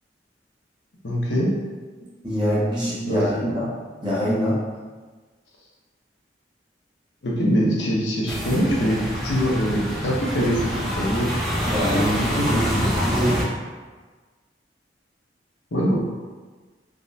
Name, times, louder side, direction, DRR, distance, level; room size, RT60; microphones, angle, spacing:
voice 1, 1.0-1.5 3.0-3.5 7.2-11.3 11.9-12.9 15.7-16.0, equal, 80° left, -4 dB, 0.7 m, -23 dB
voice 2, 2.2-3.7 4.0-4.6 11.6-13.5, equal, 25° right, -9 dB, 1.1 m, -24 dB
sound 1, 8.3-13.4, equal, ahead, 0.5 m, -26 dB
3.5 x 2.1 x 2.6 m, 1.4 s
head